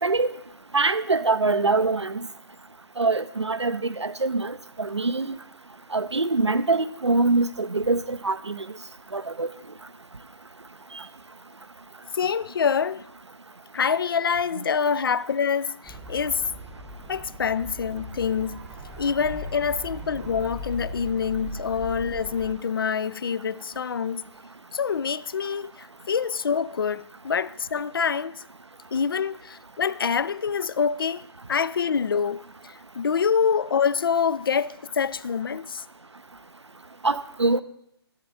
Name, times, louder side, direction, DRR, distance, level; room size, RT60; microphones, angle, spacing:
voice 1, 0.7-2.2 3.0-5.4 5.9-8.7 9.1-9.5 37.0-37.6, right 3 dB, 90° right, 0.5 m, -24 dB
voice 2, 12.1-13.0 13.7-16.5 17.1-18.6 19.0-24.2 24.7-28.4 28.9-31.2 31.5-32.4 33.0-35.8, left 6 dB, 55° left, 0.4 m, -26 dB
sound 1, 15.8-22.5, right 1 dB, 5° right, 0.9 m, -39 dB
11.5 x 8.0 x 4.0 m
figure-of-eight pair, 140°, 14 cm